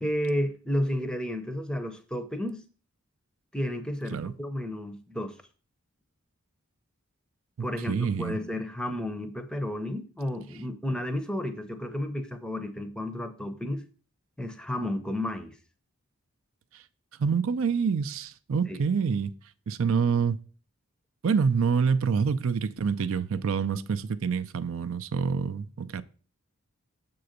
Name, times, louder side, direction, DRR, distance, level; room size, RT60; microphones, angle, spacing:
voice 1, 0.0-2.6 3.5-5.4 7.6-13.8 14.4-15.5 18.7-18.8, left 1 dB, 5° left, 0.6 m, -32 dB
voice 2, 7.9-8.4 17.2-19.3 19.7-20.4 21.2-26.0, right 6 dB, 65° right, 0.4 m, -26 dB
6.8 x 3.8 x 6.5 m
head